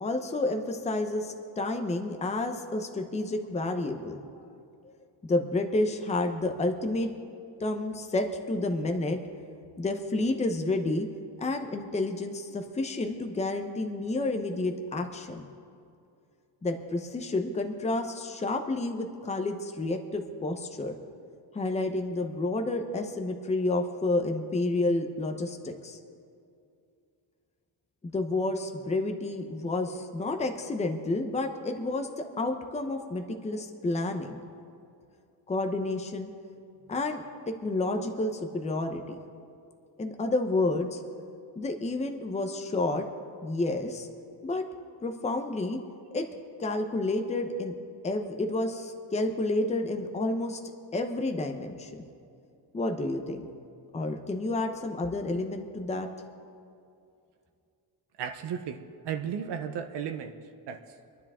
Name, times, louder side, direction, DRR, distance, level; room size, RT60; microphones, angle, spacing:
voice 1, 0.0-4.2 5.2-7.1 7.6-9.2 9.8-11.1 11.4-15.5 16.6-21.0 21.5-26.0 28.1-34.4 35.5-36.3 36.9-39.2 40.0-41.0 41.5-43.0 43.4-44.1 44.4-44.6 45.0-45.8 46.1-46.3 46.6-47.7 48.0-50.6 50.9-52.0 52.7-53.5 53.9-56.1, left 2 dB, 15° left, 5 dB, 0.9 m, -30 dB
voice 2, 58.2-58.8 59.0-60.3 60.7-60.8, right 8 dB, 65° right, 6 dB, 0.9 m, -34 dB
26.5 x 10.5 x 3.6 m, 2.5 s
cardioid pair, 160°, 45 cm